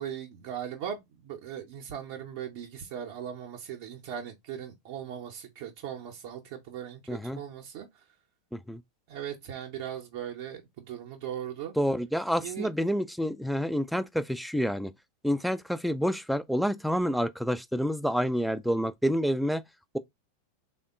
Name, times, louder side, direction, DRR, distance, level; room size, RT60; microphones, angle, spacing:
voice 1, 0.0-7.9 9.1-11.7 12.4-12.7, right 9 dB, 50° right, 0.6 m, -39 dB
voice 2, 7.1-7.4 8.5-8.8 11.8-14.9 15.2-19.6, equal, ahead, 0.3 m, -28 dB
3.4 x 2.1 x 3.6 m
figure-of-eight pair, 90°, 0 cm